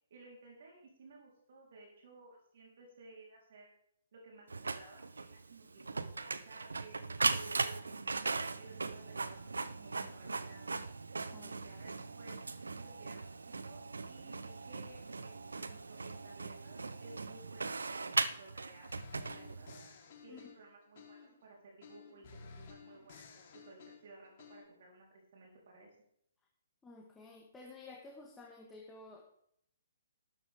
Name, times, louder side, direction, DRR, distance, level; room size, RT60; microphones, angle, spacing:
voice 1, 0.1-3.7 4.1-7.6 7.9-8.0 8.6-10.7 11.4-19.7 20.2-25.9, right 3 dB, 50° right, -2 dB, 4.0 m, -57 dB
Printer, 4.5-19.9, right 3 dB, 70° right, 0.8 m, -39 dB
sound 1, 18.9-21.4 21.8-24.6, left 5 dB, 40° left, 3.8 m, -54 dB
voice 2, 26.8-29.2, left 3 dB, 10° left, -1 dB, 1.6 m, -52 dB
13.5 x 12.5 x 3.7 m, 0.70 s
figure-of-eight pair, 130°, 0 cm